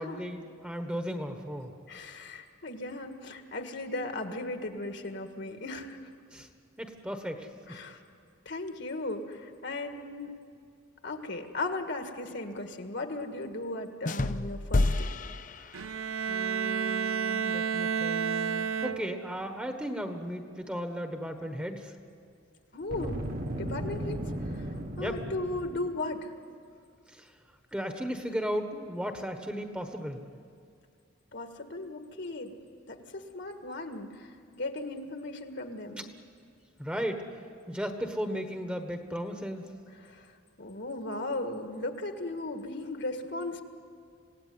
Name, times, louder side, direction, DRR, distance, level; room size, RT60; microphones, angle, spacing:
voice 1, 0.0-1.7 6.3-6.5 6.8-7.8 15.6-15.9 16.3-21.9 25.0-25.2 27.1-27.3 27.7-30.2 36.8-37.2 37.7-39.6, equal, 5° right, 5 dB, 1.4 m, -36 dB
voice 2, 1.9-6.0 7.7-8.0 8.5-10.3 11.0-15.1 22.7-23.2 23.6-24.7 25.0-26.3 31.3-32.5 32.9-36.1 40.0-40.3 40.6-43.6, left 2 dB, 55° left, 5 dB, 1.9 m, -37 dB
sound 1, 14.1-16.3, left 2 dB, 40° left, 0.6 m, -30 dB
Bowed string instrument, 15.7-19.4, right 6 dB, 90° right, 0.7 m, -31 dB
Boom, 22.8-25.9, right 1 dB, 45° right, 1.7 m, -36 dB
27.0 x 17.5 x 9.7 m, 2.3 s
head